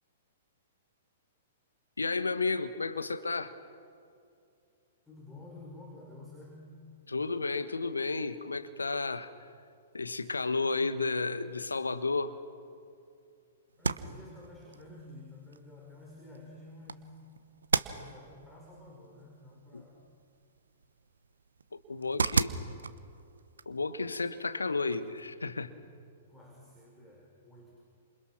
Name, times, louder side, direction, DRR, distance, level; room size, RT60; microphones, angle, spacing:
voice 1, 2.0-3.6 7.1-9.3 9.9-12.4 19.7-19.9 21.7-22.5 23.6-25.8, left 3 dB, 80° left, 11 dB, 1.4 m, -32 dB
voice 2, 5.1-6.8 13.8-17.1 17.9-20.0 22.0-22.7 26.3-27.8, left 2 dB, 10° left, -2 dB, 5.2 m, -51 dB
sound 1, 13.7-25.3, right 5 dB, 75° right, 1.0 m, -38 dB
30.0 x 27.5 x 6.1 m, 2.4 s
figure-of-eight pair, 110°, 0 cm